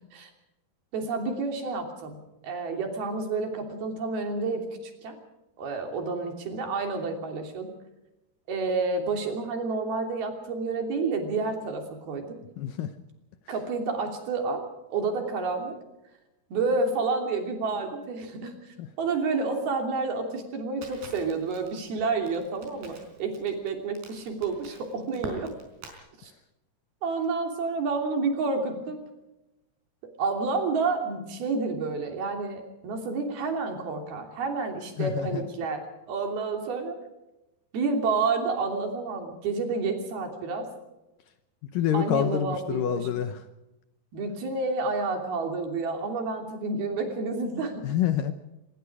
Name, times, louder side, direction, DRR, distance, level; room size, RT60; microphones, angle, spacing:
voice 1, 0.9-2.2 2.4-4.7 5.0-5.2 5.6-7.7 8.5-12.4 13.5-14.6 14.9-15.7 16.5-25.5 26.2-26.3 27.0-29.0 30.2-36.9 37.7-40.7 41.9-43.1 44.1-47.8, right 4 dB, 65° right, 4 dB, 4.9 m, -29 dB
voice 2, 12.6-12.9 18.8-18.9 35.0-35.4 41.7-43.4 47.8-48.3, left 10 dB, 70° left, 9 dB, 2.2 m, -27 dB
Crackle, 20.8-26.0, right 3 dB, 85° right, 6.6 m, -45 dB
25.0 x 21.5 x 4.9 m, 0.95 s
omnidirectional pair, 4.7 m